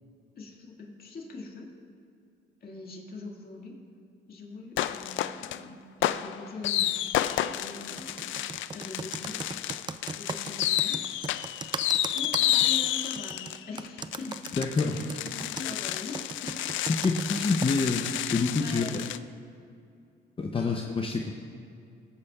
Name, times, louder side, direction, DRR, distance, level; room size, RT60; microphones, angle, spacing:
voice 1, 0.4-1.7 2.6-3.8 4.3-6.9 7.3-9.4 10.2-11.1 12.1-16.7 18.3-18.9 20.5-20.9, left 3 dB, 50° left, -1 dB, 2.1 m, -43 dB
sound 1, 4.8-5.6 6.0-19.2, left 13 dB, 75° left, 0.4 m, -30 dB
Computer keyboard, 8.0-18.2, right 5 dB, 20° right, 0.4 m, -38 dB
voice 2, 14.6-15.0 16.9-18.0 18.3-18.9 20.4-21.3, left 4 dB, 25° left, 2 dB, 0.7 m, -27 dB
21.5 x 8.6 x 2.4 m, 2.5 s
cardioid pair, 90°, 20 cm